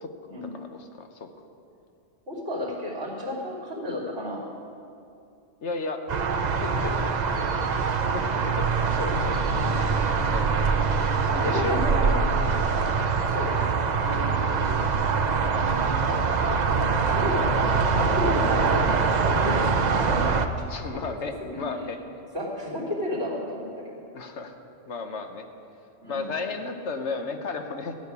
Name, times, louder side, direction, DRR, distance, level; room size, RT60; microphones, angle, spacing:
voice 1, 0.5-1.3 5.6-6.0 6.6-7.2 8.1-9.4 10.3-10.7 11.5-12.8 13.6-14.0 16.2-16.3 20.7-22.0 24.1-24.5 24.9-25.4 26.1-27.9, left 3 dB, 70° left, 6 dB, 1.2 m, -34 dB
voice 2, 2.3-4.4 9.6-9.8 11.3-12.1 13.2-14.9 15.1-15.2 16.8-20.2 20.6-20.7 21.0-21.2 21.5-21.6 22.3-24.0 26.0-26.3, left 1 dB, 60° right, -4 dB, 3.2 m, -33 dB
sound 1, 6.1-20.5, right 5 dB, 45° right, 0.7 m, -24 dB
15.0 x 6.5 x 9.8 m, 2.6 s
omnidirectional pair, 1.2 m